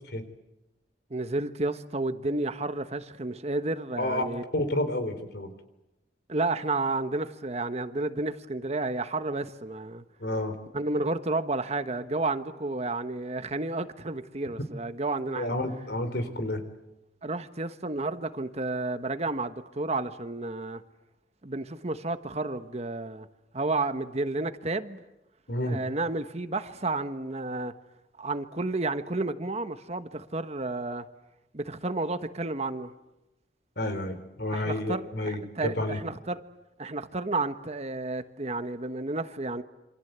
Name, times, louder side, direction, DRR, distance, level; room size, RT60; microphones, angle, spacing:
voice 1, 1.1-4.4 6.3-10.0 10.7-15.6 17.2-20.8 21.4-23.3 23.5-25.0 25.7-27.7 28.2-31.0 31.5-32.9 34.5-36.4 36.8-39.6, right 2 dB, 40° right, 1.3 m, -31 dB
voice 2, 4.5-5.5 10.2-10.6 15.4-16.6 25.5-25.8 33.8-36.0, left 1 dB, 65° left, 3.9 m, -30 dB
27.5 x 26.0 x 8.1 m
head